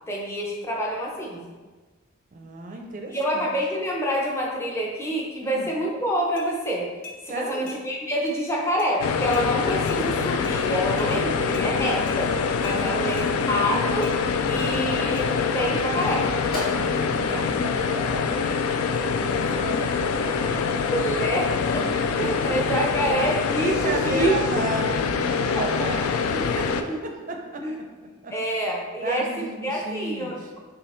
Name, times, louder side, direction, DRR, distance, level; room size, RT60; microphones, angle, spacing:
voice 1, 0.1-1.5 3.1-6.9 7.2-12.3 12.6-13.2 13.5-14.1 14.5-15.3 15.5-16.3 19.0-19.4 20.8-21.5 21.7-21.9 22.2-24.6 25.5-26.1 26.9-27.0 27.6-27.8 28.3-30.6, equal, 15° left, -2 dB, 0.6 m, -27 dB
voice 2, 2.3-3.5 5.4-5.7 7.3-7.7 12.7-13.1 13.3-13.5 16.8-18.4 19.1-20.8 22.2-22.6 23.5-27.9 28.2-28.3 29.0-30.5, right 2 dB, 40° right, 3 dB, 0.5 m, -34 dB
sound 1, 6.4-6.5 7.0-7.2 7.7-7.8 8.3-8.4 8.8-8.9 9.3-9.5 9.9-10.0 10.4-10.6 11.0-11.1 11.5-11.7 12.1-12.2 12.6-12.8 13.2-13.3 14.0-14.2 14.6-14.7 15.2-15.3, left 3 dB, 60° left, 0.7 m, -42 dB
sound 2, 9.0-26.8, left 5 dB, 90° left, 0.3 m, -25 dB
Telephone, 10.7-14.0 14.4-14.5 14.7-17.6, left 1 dB, 45° left, 1.2 m, -38 dB
5.9 x 2.4 x 3.1 m, 1.3 s
head